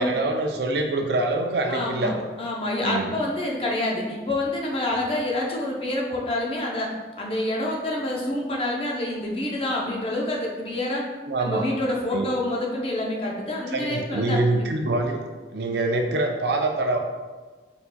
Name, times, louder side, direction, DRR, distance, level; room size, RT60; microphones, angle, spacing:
voice 1, 0.0-2.2 2.8-3.1 11.2-11.7 12.1-12.3 13.7-15.2 15.5-17.0, right 2 dB, 65° right, 3 dB, 0.5 m, -25 dB
voice 2, 1.7-2.1 2.4-6.9 7.2-11.0 11.4-14.4, left 1 dB, 30° left, -2 dB, 0.6 m, -27 dB
4.5 x 4.2 x 2.2 m, 1.3 s
head